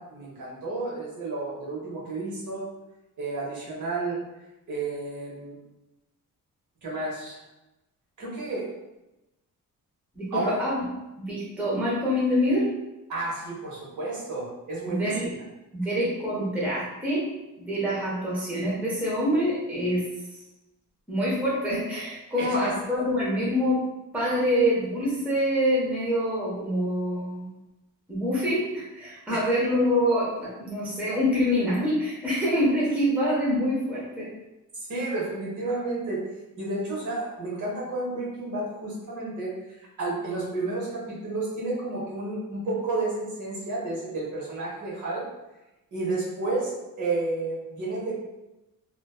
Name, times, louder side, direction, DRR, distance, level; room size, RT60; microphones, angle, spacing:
voice 1, 0.0-2.7 3.2-4.2 4.7-5.6 6.8-7.4 8.2-8.7 10.3-10.6 13.1-15.2 22.4-23.1 29.3-29.5 34.7-36.2 36.6-45.2 45.9-46.7 47.0-48.1, right 2 dB, 60° right, -5 dB, 0.9 m, -31 dB
voice 2, 10.2-10.8 11.2-12.7 14.9-15.3 15.7-17.3 17.6-20.0 21.1-23.8 24.1-27.5 28.1-34.3, equal, 5° right, -7 dB, 0.6 m, -25 dB
2.4 x 2.2 x 2.3 m, 0.97 s
wide cardioid pair, 150°, 34 cm